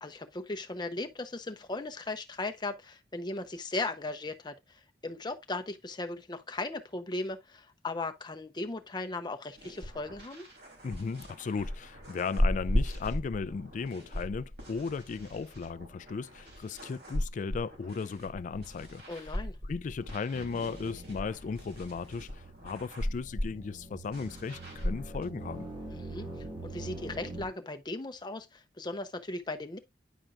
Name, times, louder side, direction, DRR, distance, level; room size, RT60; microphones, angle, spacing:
voice 1, 0.0-10.5 19.1-19.6 25.9-29.8, left 2 dB, 25° left, 0.7 m, -37 dB
sound 1, 9.6-25.2, left 1 dB, 65° right, 3.3 m, -37 dB
voice 2, 10.8-19.0 19.6-22.3 22.6-25.7, left 5 dB, 45° left, 0.3 m, -36 dB
sound 2, 20.3-27.5, right 2 dB, 30° right, 1.8 m, -44 dB
10.0 x 4.4 x 2.4 m
head